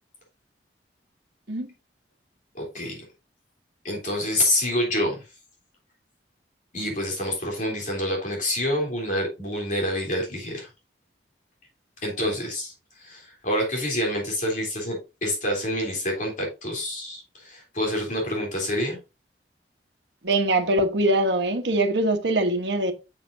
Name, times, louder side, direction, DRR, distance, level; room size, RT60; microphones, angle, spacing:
voice 1, 2.5-3.0 3.8-5.2 6.7-10.7 12.0-12.7 13.0-19.0, left 1 dB, 45° left, 3.5 m, -27 dB
voice 2, 20.2-22.9, right 1 dB, 80° right, 1.3 m, -22 dB
7.6 x 6.8 x 2.7 m
head